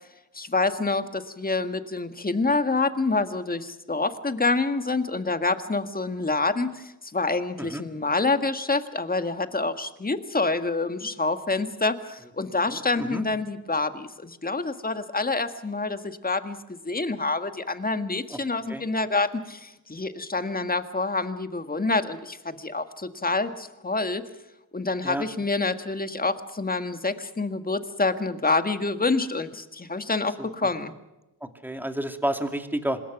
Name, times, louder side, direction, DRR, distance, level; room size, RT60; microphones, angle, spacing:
voice 1, 0.3-16.6 16.8-24.2 24.7-30.9, left 3 dB, 20° left, 9 dB, 1.8 m, -27 dB
voice 2, 12.7-13.2 18.3-18.4 18.7-18.8 25.0-25.3 30.4-30.5 31.4-33.0, right 1 dB, 5° right, 6 dB, 2.6 m, -30 dB
26.5 x 21.0 x 6.0 m, 0.97 s
cardioid pair, 75°, 39 cm